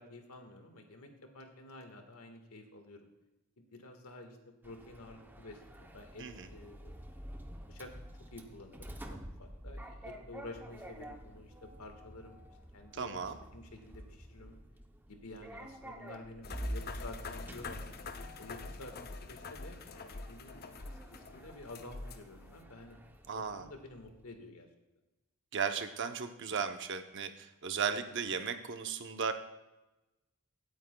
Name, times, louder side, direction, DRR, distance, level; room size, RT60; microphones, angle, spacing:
voice 1, 0.0-3.0 3.6-6.9 7.7-7.9 8.3-12.4 12.7-14.6 15.1-18.0 18.4-18.9 19.2-23.0 23.3-24.7, left 2 dB, 80° left, 4 dB, 1.6 m, -50 dB
Sliding door, 4.6-24.2, equal, 10° right, 0.7 m, -49 dB
voice 2, 12.9-13.4 23.3-23.6 25.5-29.3, right 6 dB, 55° right, 8 dB, 0.7 m, -36 dB
sound 1, 16.4-22.6, left 3 dB, 45° left, 0.6 m, -46 dB
17.0 x 8.9 x 2.3 m, 1.0 s
head